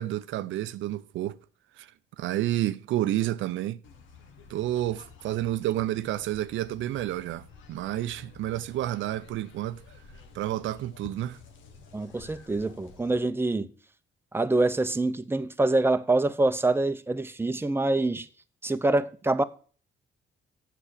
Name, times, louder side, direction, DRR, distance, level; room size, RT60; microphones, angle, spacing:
voice 1, 0.0-1.4 1.8-1.9 2.2-3.8 4.5-9.8 10.3-11.4, right 13 dB, 85° right, 0.5 m, -30 dB
sound 1, 3.8-13.2, left 5 dB, 90° left, 1.4 m, -51 dB
voice 2, 11.9-13.7 14.3-18.3 18.6-19.4, right 2 dB, 10° right, 0.7 m, -25 dB
7.4 x 6.9 x 6.5 m
cardioid pair, 80°, 19 cm